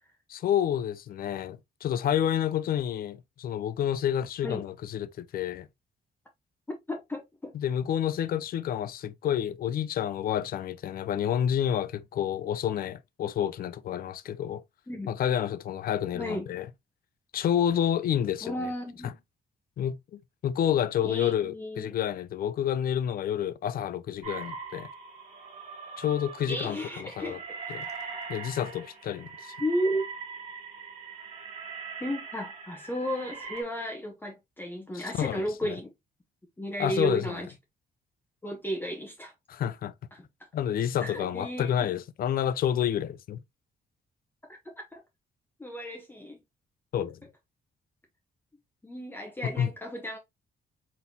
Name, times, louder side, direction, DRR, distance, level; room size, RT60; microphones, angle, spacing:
voice 1, 0.3-5.7 7.5-14.6 15.1-16.7 17.3-18.5 19.8-24.9 26.0-27.4 27.7-27.9 28.3-29.5 34.9-35.8 36.8-37.4 39.5-39.9 40.5-43.4 46.9-47.2 49.4-49.7, left 10 dB, 60° left, 0.4 m, -29 dB
voice 2, 6.9-7.5 14.9-15.1 16.1-16.5 18.4-19.1 21.0-21.9 26.5-27.4 29.6-30.0 32.0-35.9 36.6-37.5 38.4-39.3 40.1-40.5 41.0-42.0 44.5-45.0 45.6-46.4 48.8-50.2, equal, 10° left, 0.8 m, -34 dB
sound 1, 24.2-33.6, right 5 dB, 40° right, 1.9 m, -41 dB
4.1 x 3.7 x 2.7 m
cardioid pair, 135°, 17 cm